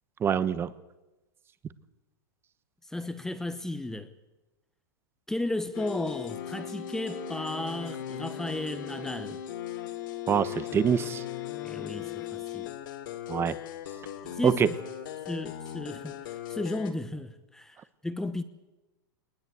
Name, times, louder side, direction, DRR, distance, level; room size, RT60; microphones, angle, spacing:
voice 1, 0.2-0.7 10.3-11.2 13.3-13.5 14.4-14.7, right 8 dB, 20° right, 1.1 m, -25 dB
voice 2, 2.9-4.1 5.3-9.4 11.6-12.7 14.3-14.7 15.3-16.2 16.5-17.8 18.0-18.4, left 2 dB, 5° left, 1.1 m, -34 dB
sound 1, 5.7-16.9, left 11 dB, 65° left, 2.8 m, -38 dB
21.0 x 20.0 x 8.3 m
hypercardioid pair, 130°, 12 cm